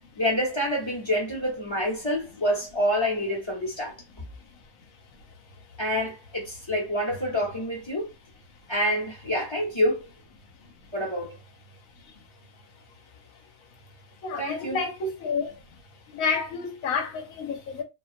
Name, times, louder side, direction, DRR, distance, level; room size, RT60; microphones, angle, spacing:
voice 1, 0.2-3.9 5.8-8.1 8.7-10.1 10.9-11.3 14.4-14.8, equal, 25° left, 0.8 m, -27 dB
voice 2, 14.2-15.6 16.1-17.8, left 4 dB, 80° left, 1.1 m, -29 dB
2.3 x 2.3 x 2.5 m
omnidirectional pair, 1.4 m